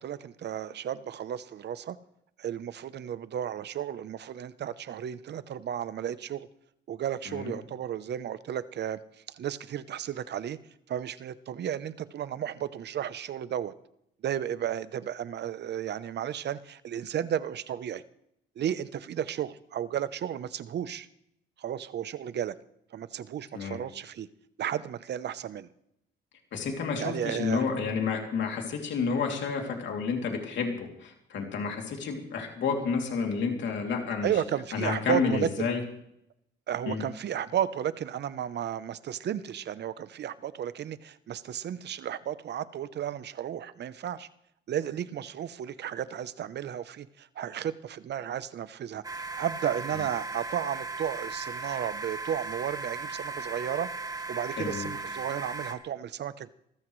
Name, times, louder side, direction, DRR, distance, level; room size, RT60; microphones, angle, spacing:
voice 1, 0.0-2.0 2.4-6.5 6.9-9.0 9.3-10.6 10.9-13.7 14.2-18.0 18.6-21.1 21.6-22.5 22.9-24.3 24.6-25.7 27.0-27.6 34.2-35.7 36.7-44.3 44.7-49.0 49.4-53.9 54.3-56.5, right 10 dB, 60° right, 15 dB, 0.8 m, -33 dB
voice 2, 26.5-34.3 34.7-35.8 36.9-37.0 54.6-54.9, left 5 dB, 70° left, 2 dB, 2.9 m, -30 dB
sound 1, 49.0-55.7, right 3 dB, 20° right, 1.5 m, -37 dB
22.5 x 14.5 x 3.2 m, 0.77 s
cardioid pair, 90°, 20 cm